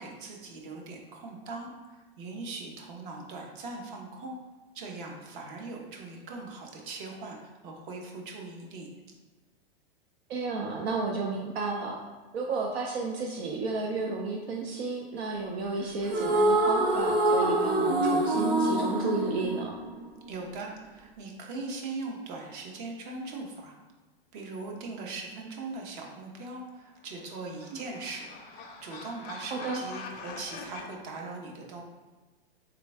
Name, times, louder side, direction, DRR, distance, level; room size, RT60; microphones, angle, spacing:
voice 1, 0.0-4.4 4.7-8.9 20.3-23.7 24.3-31.8, right 3 dB, 55° right, 0 dB, 1.0 m, -40 dB
voice 2, 10.3-12.0 12.3-19.7 27.7-27.8 29.5-29.8, right 3 dB, 75° right, 0 dB, 0.6 m, -32 dB
sound 1, 16.0-20.5, right 1 dB, 30° right, 0.7 m, -25 dB
sound 2, 27.0-30.9, left 4 dB, 30° left, 0.5 m, -44 dB
3.7 x 3.5 x 3.4 m, 1.3 s
hypercardioid pair, 120°, 31 cm